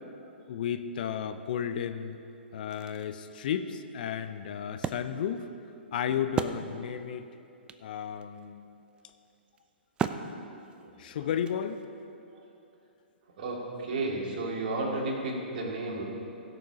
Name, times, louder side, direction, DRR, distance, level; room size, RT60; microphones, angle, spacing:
voice 1, 0.5-2.2 2.5-5.5 5.9-7.3 7.8-8.8 11.0-11.8, left 8 dB, 50° left, 9 dB, 0.6 m, -33 dB
Wood, 1.9-2.0 2.5-7.1 7.4-7.5 7.7-12.0, right 6 dB, 15° right, 0.4 m, -38 dB
voice 2, 13.4-16.0, right 2 dB, 50° right, -2 dB, 2.4 m, -33 dB
16.0 x 6.8 x 4.9 m, 2.7 s
figure-of-eight pair, 115°, 6 cm